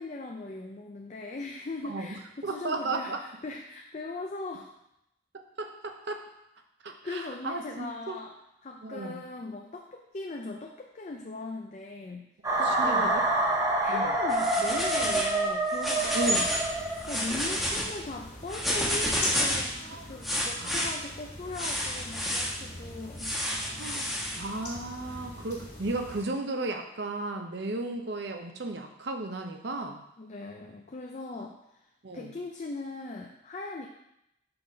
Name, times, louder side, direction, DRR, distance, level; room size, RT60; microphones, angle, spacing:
voice 1, 0.0-4.7 7.0-12.2 12.6-13.2 13.8-16.5 17.1-23.3 30.2-31.9 32.1-33.9, left 2 dB, 35° left, 1 dB, 0.4 m, -39 dB
voice 2, 2.4-3.2 5.3-6.2 6.8-8.2 8.8-9.2 12.6-13.1 13.9-14.1 16.1-16.5 19.8-20.2 20.6-20.9 23.7-24.1 24.4-30.0 31.3-31.4 32.0-32.3, right 2 dB, 60° right, 4 dB, 0.7 m, -35 dB
sound 1, 12.4-17.4, right 2 dB, 15° right, 0.8 m, -27 dB
sound 2, 14.3-15.3 15.7-16.6 17.0-17.8 18.5-19.7 20.2-20.9 21.5-22.5 23.2-24.4, equal, ahead, 1.2 m, -30 dB
sound 3, 16.2-26.2, left 1 dB, 55° left, 2.0 m, -43 dB
5.7 x 4.1 x 5.2 m, 0.82 s
head